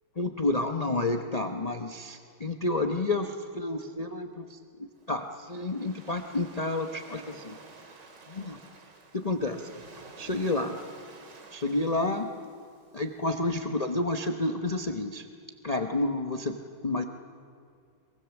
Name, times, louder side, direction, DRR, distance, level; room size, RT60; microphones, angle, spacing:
voice 1, 0.2-7.6 8.3-8.6 9.1-9.7 10.2-10.8 11.5-12.3 12.9-15.3 15.6-17.0, left 2 dB, 30° left, 5 dB, 0.7 m, -30 dB
Waves surf, 5.0-13.2, right 4 dB, 60° right, 2.7 m, -51 dB
23.5 x 23.0 x 7.2 m, 2.3 s
omnidirectional pair, 2.2 m